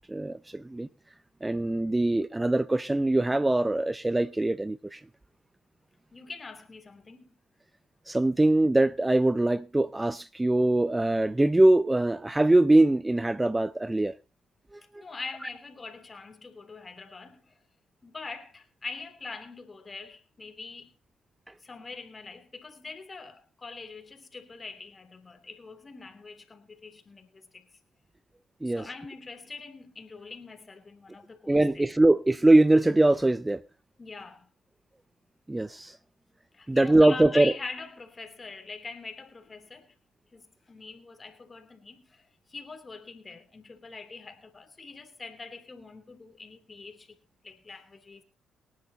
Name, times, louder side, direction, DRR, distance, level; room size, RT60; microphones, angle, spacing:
voice 1, 0.1-0.9 1.4-5.0 8.1-14.1 28.6-28.9 31.5-33.6 35.5-36.0 36.7-37.5, right 2 dB, 15° right, 0.6 m, -22 dB
voice 2, 6.1-7.3 14.9-17.6 18.0-20.9 21.6-27.7 28.6-31.9 34.0-34.5 36.5-39.9 40.3-47.1 47.4-48.2, left 4 dB, 30° left, 3.1 m, -43 dB
22.5 x 10.5 x 2.9 m
figure-of-eight pair, 45°, 0 cm